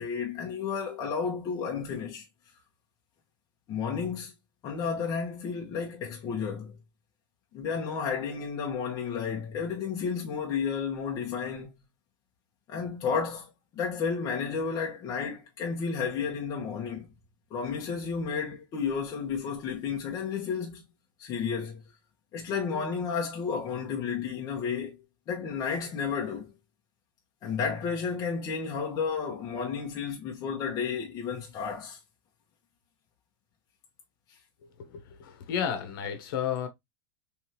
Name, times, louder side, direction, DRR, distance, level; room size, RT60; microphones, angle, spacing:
voice 1, 0.0-2.2 3.7-4.3 4.6-6.8 7.5-11.7 12.7-17.1 17.5-20.9 21.2-21.8 22.3-25.0 25.3-26.6 27.4-32.0, left 6 dB, 35° left, 1.1 m, -32 dB
voice 2, 34.8-36.7, left 8 dB, 80° left, 1.1 m, -32 dB
3.4 x 3.4 x 2.9 m
supercardioid pair, 155°, 11 cm